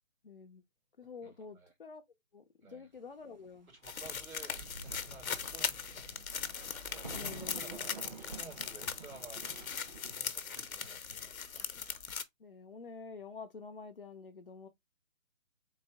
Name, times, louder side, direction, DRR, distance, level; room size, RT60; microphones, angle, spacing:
voice 1, 0.2-0.6 1.0-2.0 2.3-3.7 7.0-7.9 12.4-14.7, left 5 dB, 45° left, 0.4 m, -48 dB
voice 2, 1.2-1.7 2.6-2.9 3.7-5.8 7.0-9.5 10.2-11.5, right 4 dB, 80° right, 2.5 m, -54 dB
sound 1, 3.8-12.2, left 7 dB, 75° left, 0.8 m, -40 dB
Human voice / Acoustic guitar / Drum, 4.1-12.1, right 2 dB, 65° right, 1.6 m, -59 dB
Thunder, 4.5-10.2, right 3 dB, 35° right, 0.6 m, -49 dB
3.9 x 2.7 x 3.5 m
figure-of-eight pair, 155°, 42 cm